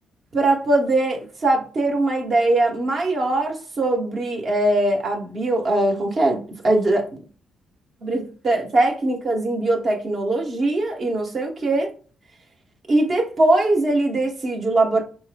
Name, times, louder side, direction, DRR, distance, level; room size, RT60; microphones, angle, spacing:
voice 1, 0.3-7.1 8.0-11.9 12.9-15.0, right 2 dB, 50° right, 1.1 m, -21 dB
4.6 x 3.0 x 2.2 m
figure-of-eight pair, 40°, 0 cm